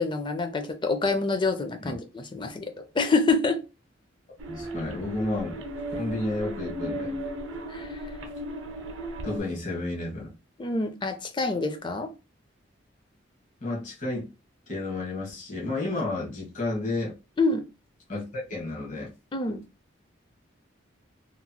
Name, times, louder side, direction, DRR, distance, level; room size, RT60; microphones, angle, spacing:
voice 1, 0.0-3.6 7.7-7.9 10.6-12.1 17.4-17.6 19.3-19.6, left 3 dB, 25° left, 0.4 m, -27 dB
sound 1, 4.4-9.4, right 1 dB, 80° right, 0.6 m, -35 dB
voice 2, 4.5-5.6 5.9-7.2 9.2-10.3 13.6-14.3 14.7-17.1 18.1-19.1, left 2 dB, 40° left, 1.2 m, -31 dB
3.0 x 2.8 x 2.2 m
head